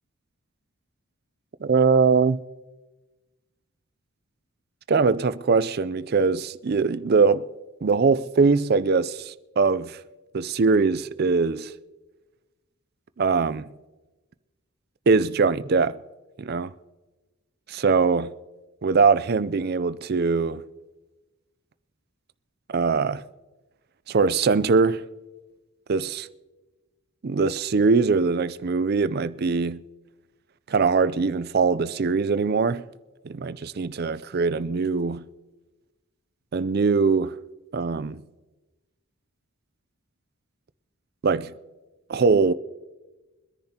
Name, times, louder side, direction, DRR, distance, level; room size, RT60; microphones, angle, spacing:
voice 1, 1.6-2.4 4.9-7.5 7.8-10.0 10.3-11.7 13.2-13.7 15.1-16.0 16.4-16.7 17.7-18.3 18.8-20.6 22.7-23.2 24.1-25.0 25.9-26.3 27.2-29.8 30.7-32.8 33.2-35.2 36.5-37.4 37.7-38.2 41.2-41.5 42.1-42.5, right 4 dB, 45° right, 0.4 m, -22 dB
23.5 x 10.5 x 2.9 m
head